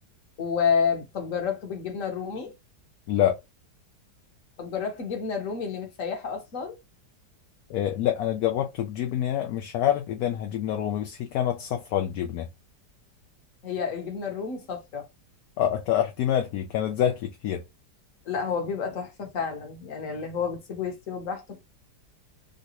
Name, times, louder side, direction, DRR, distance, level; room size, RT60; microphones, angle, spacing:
voice 1, 0.4-2.5 4.6-6.8 13.6-15.1 18.2-21.6, left 6 dB, 55° left, 1.4 m, -30 dB
voice 2, 3.1-3.4 7.7-12.5 15.6-17.6, left 10 dB, 70° left, 1.0 m, -26 dB
3.8 x 2.1 x 2.9 m
omnidirectional pair, 1.8 m